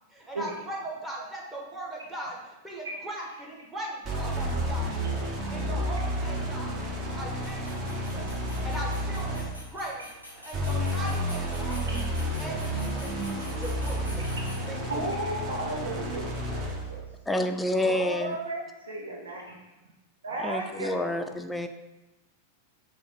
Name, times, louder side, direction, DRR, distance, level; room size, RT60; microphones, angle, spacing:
voice 1, 0.1-4.9 5.3-6.8 7.1-10.0 10.4-11.8 12.4-14.4 14.7-15.2, right 1 dB, 10° right, -3 dB, 1.1 m, -39 dB
sound 1, 4.0-9.7 10.5-16.9, equal, 30° right, 0.9 m, -31 dB
sound 2, 6.0-15.1, equal, 90° right, 1.1 m, -48 dB
voice 2, 11.9-12.4 14.3-14.6 14.9-17.0 17.7-19.6 20.2-21.3, right 2 dB, 70° right, 0 dB, 0.7 m, -35 dB
voice 3, 17.3-18.4 20.4-21.7, left 1 dB, 5° left, 6 dB, 0.4 m, -28 dB
5.8 x 2.1 x 4.0 m, 1.0 s
figure-of-eight pair, 90°, 0 cm